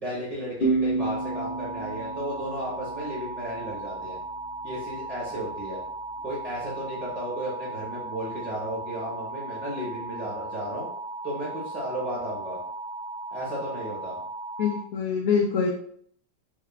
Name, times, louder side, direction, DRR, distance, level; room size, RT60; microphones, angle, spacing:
voice 1, 0.0-4.2 4.6-5.8 6.2-10.9 11.2-12.6 13.3-14.2, equal, 30° right, -7 dB, 0.7 m, -34 dB
sound 1, 0.6-4.0, right 3 dB, 50° left, 0.6 m, -30 dB
sound 2, 1.0-14.8, right 2 dB, 75° right, 1.1 m, -37 dB
voice 2, 14.6-15.7, left 6 dB, 80° left, 0 dB, 0.7 m, -24 dB
3.6 x 3.5 x 2.2 m, 0.63 s
omnidirectional pair, 2.0 m